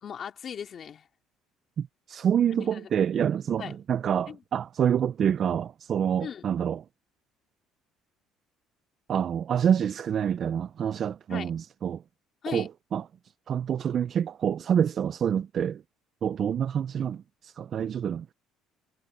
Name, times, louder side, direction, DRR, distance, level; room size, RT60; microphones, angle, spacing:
voice 1, 0.0-1.1 2.5-2.9 3.6-3.8 4.3-4.4 6.2-6.5 11.3-11.5 12.4-12.7, left 8 dB, 40° left, 3.0 m, -38 dB
voice 2, 1.8-6.8 9.1-12.0 12.5-13.0 13.5-15.8 16.2-18.3, right 8 dB, 45° right, 0.4 m, -27 dB
cardioid pair, 125°, 0 cm